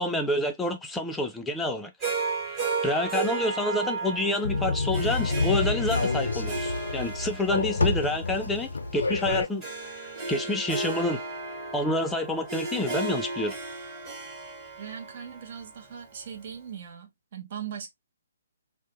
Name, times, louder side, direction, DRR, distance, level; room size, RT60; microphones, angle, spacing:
voice 1, 0.0-1.9 2.8-9.7 10.3-11.2 11.7-13.5, left 1 dB, 5° left, 0.4 m, -28 dB
Harp, 2.0-16.4, right 3 dB, 20° right, 1.1 m, -34 dB
sound 1, 4.4-9.5, left 3 dB, 85° left, 0.5 m, -28 dB
voice 2, 14.8-17.9, right 8 dB, 50° right, 0.6 m, -40 dB
2.1 x 2.0 x 2.8 m
hypercardioid pair, 150°, 0 cm